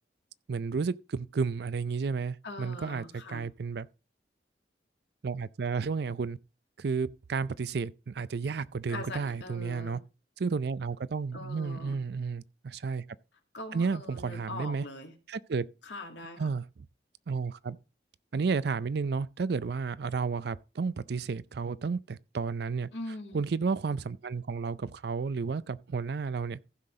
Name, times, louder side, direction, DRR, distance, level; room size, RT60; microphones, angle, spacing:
voice 1, 0.5-3.9 5.2-6.4 6.8-10.0 10.4-13.0 13.7-14.8 15.3-15.7 16.4-16.6 17.3-17.8 18.3-22.9 23.3-26.6, right 5 dB, 65° right, 0.4 m, -32 dB
voice 2, 2.4-3.4 8.9-10.0 11.3-12.0 13.5-15.1 15.8-16.5 22.9-23.4, left 2 dB, 80° left, 2.3 m, -42 dB
15.0 x 6.0 x 3.8 m
head